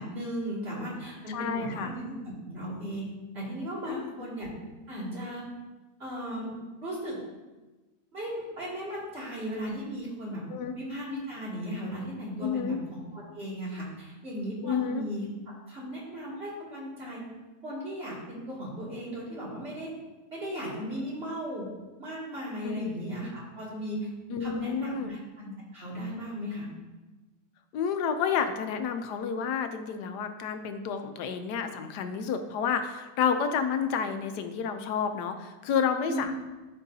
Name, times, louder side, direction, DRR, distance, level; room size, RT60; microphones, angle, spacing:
voice 1, 0.0-3.0 3.3-4.5 4.9-5.4 6.0-6.5 6.8-7.2 8.1-10.4 10.7-15.2 15.7-17.2 17.6-19.9 20.3-21.7 22.0-24.1 24.4-26.7 36.1-36.3, equal, 40° right, -7 dB, 2.8 m, -36 dB
voice 2, 1.3-1.9 3.9-4.1 10.5-10.8 12.4-12.8 14.6-15.1 22.6-22.9 24.3-25.1 27.7-36.3, left 7 dB, 80° left, 8 dB, 1.2 m, -30 dB
12.5 x 4.6 x 2.7 m, 1.2 s
omnidirectional pair, 1.8 m